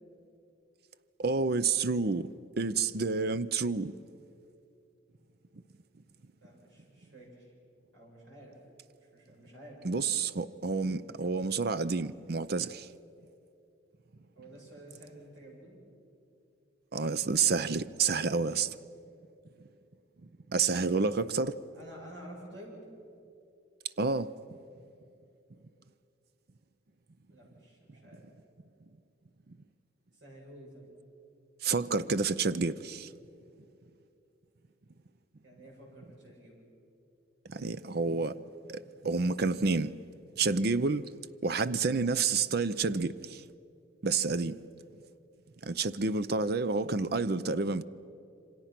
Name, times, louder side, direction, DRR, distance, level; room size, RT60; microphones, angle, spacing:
voice 1, 1.2-2.3 2.6-3.9 9.8-12.9 16.9-18.8 20.5-21.6 24.0-24.3 31.6-33.1 37.5-38.3 38.7-40.0 40.4-41.1 41.4-43.4 44.0-44.6 45.6-47.8, right 4 dB, 55° right, 0.6 m, -29 dB
voice 2, 6.4-7.5 7.9-8.6 9.1-9.8 14.3-15.8 21.7-22.8 27.3-28.3 30.1-30.9 35.4-36.6, right 1 dB, 70° right, 7.7 m, -51 dB
27.5 x 25.5 x 6.0 m
head